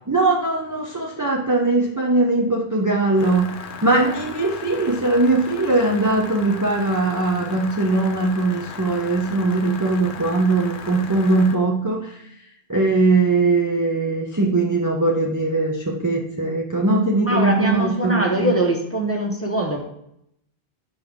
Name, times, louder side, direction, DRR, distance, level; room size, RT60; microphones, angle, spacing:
voice 1, 0.1-12.2 12.7-18.6, right 2 dB, 20° right, -1 dB, 0.6 m, -20 dB
sound 1, 3.2-11.6, left 5 dB, 60° left, 0.8 m, -37 dB
voice 2, 17.2-19.8, right 1 dB, 15° left, 0 dB, 0.9 m, -22 dB
5.5 x 5.3 x 3.5 m, 0.74 s
omnidirectional pair, 1.0 m